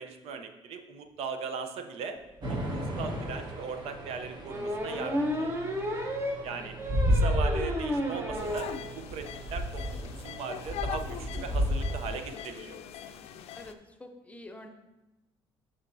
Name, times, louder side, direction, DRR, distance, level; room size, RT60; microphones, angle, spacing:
voice 1, 0.0-2.2 2.5-5.5 6.4-6.7 7.1-8.7 9.0-12.8, right 5 dB, 75° right, 7 dB, 0.6 m, -39 dB
sound 1, 2.4-12.2, equal, 40° right, 1.3 m, -33 dB
sound 2, 4.5-8.8 9.2-9.3 9.5-9.6 9.8-10.1, equal, 25° right, 0.9 m, -32 dB
sound 3, 8.4-13.7, left 10 dB, 75° left, 0.4 m, -42 dB
voice 2, 13.5-14.7, left 1 dB, 15° left, 4 dB, 0.6 m, -47 dB
7.8 x 5.7 x 2.6 m, 0.99 s
cardioid pair, 130°, 10 cm